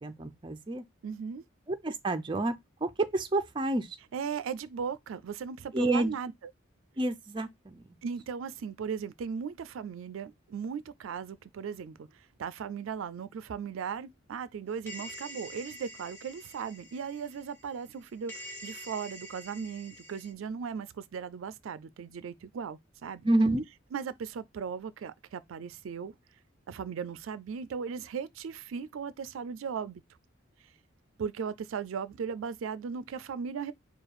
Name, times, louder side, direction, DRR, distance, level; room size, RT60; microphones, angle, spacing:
voice 1, 0.0-0.8 1.8-2.6 2.8-3.9 5.7-6.1 7.0-7.5 23.2-23.6, right 2 dB, 25° right, 0.5 m, -28 dB
voice 2, 1.0-1.4 4.1-6.3 8.0-12.1 12.4-23.3 23.9-26.1 26.7-30.0 31.2-33.7, right 6 dB, 85° right, 0.4 m, -37 dB
sound 1, 14.9-18.0 18.3-20.3, equal, 10° left, 1.1 m, -46 dB
4.8 x 2.3 x 4.6 m
head